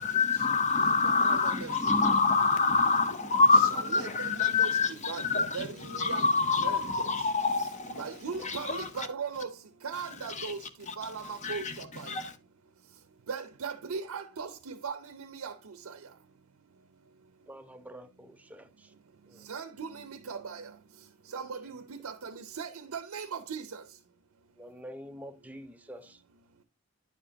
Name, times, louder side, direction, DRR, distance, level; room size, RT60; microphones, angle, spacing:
voice 1, 0.0-8.0 8.4-9.1 10.3-10.5 10.9-11.0 11.4-12.3, left 4 dB, 30° left, 0.7 m, -26 dB
voice 2, 1.0-1.7 4.0-4.7 5.1-5.7 6.0-6.2 6.6-6.8 7.9-9.5 9.8-10.6 11.0-12.1 13.3-15.5 19.5-20.6 21.3-23.7, right 5 dB, 75° right, 0.6 m, -38 dB
voice 3, 17.5-18.9 19.3-19.5 21.6-21.8 24.6-26.1, equal, 5° right, 0.4 m, -47 dB
10.0 x 5.0 x 2.8 m
head